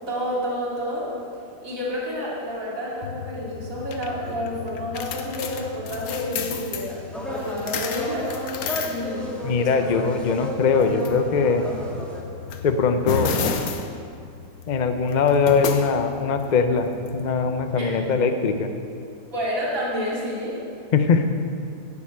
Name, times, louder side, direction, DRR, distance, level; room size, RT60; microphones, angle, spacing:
voice 1, 0.1-1.1 1.6-7.0 7.2-8.3 8.8-9.3 9.6-9.7 17.8-17.9 19.3-20.6, equal, 50° right, -6 dB, 3.3 m, -29 dB
sound 1, 3.0-17.7, left 6 dB, 65° left, 1.2 m, -33 dB
sound 2, 6.8-12.2, equal, ahead, 1.5 m, -33 dB
voice 2, 9.4-11.7 12.6-13.3 14.7-18.7 20.9-21.2, left 5 dB, 50° left, 7 dB, 0.5 m, -21 dB
11.0 x 7.0 x 8.6 m, 2.5 s
omnidirectional pair, 1.8 m